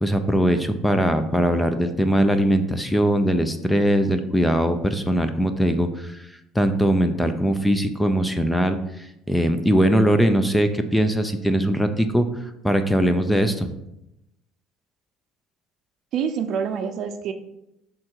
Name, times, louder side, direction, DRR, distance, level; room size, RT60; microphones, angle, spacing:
voice 1, 0.0-6.2 6.5-8.8 9.3-12.3 12.6-13.7, equal, 5° left, 8 dB, 0.6 m, -20 dB
voice 2, 16.1-17.3, right 7 dB, 55° right, 8 dB, 0.6 m, -26 dB
6.0 x 3.8 x 4.5 m, 0.85 s
supercardioid pair, 90°, 0 cm